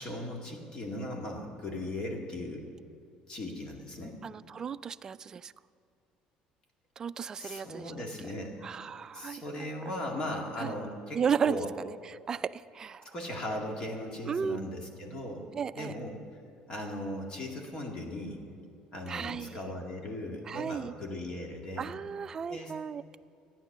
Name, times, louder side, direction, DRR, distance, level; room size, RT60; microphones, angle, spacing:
voice 1, 0.0-2.7 3.3-4.2 7.4-8.6 9.1-11.2 11.4-11.7 13.1-16.2 16.7-18.4 18.9-21.9 22.5-22.7, left 1 dB, 35° left, 1 dB, 2.2 m, -38 dB
voice 2, 4.2-5.5 7.0-7.9 8.6-9.7 10.6-10.7 11.1-11.6 11.8-13.1 14.3-14.6 15.5-15.9 19.1-19.6 20.5-20.9 21.8-23.2, right 7 dB, 25° right, 14 dB, 0.3 m, -34 dB
14.0 x 9.8 x 6.7 m, 2.5 s
cardioid pair, 145°, 2 cm